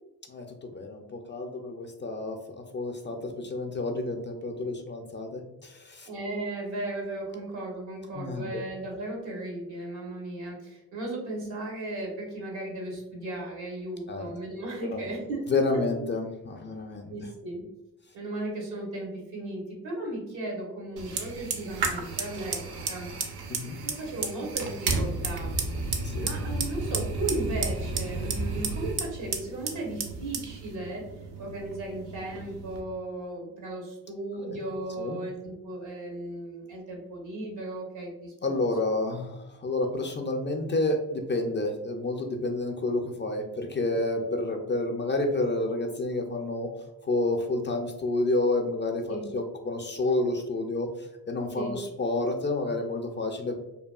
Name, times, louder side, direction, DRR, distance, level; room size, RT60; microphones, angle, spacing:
voice 1, 0.3-6.1 8.1-8.5 14.1-14.3 14.9-15.0 15.5-17.1 23.5-23.8 26.0-26.3 34.4-34.6 35.0-35.2 38.4-46.7 47.0-50.9 51.3-53.6, left 2 dB, 30° left, 3 dB, 0.4 m, -29 dB
voice 2, 6.0-15.5 17.1-17.7 18.1-22.6 22.9-23.1 23.8-25.5 26.2-31.1 31.4-38.5 49.1-49.3 51.5-51.8, right 2 dB, 80° right, -1 dB, 1.0 m, -36 dB
Fire, 21.0-32.8, right 3 dB, 60° right, 0.6 m, -32 dB
2.7 x 2.3 x 2.2 m, 0.94 s
supercardioid pair, 45°, 43 cm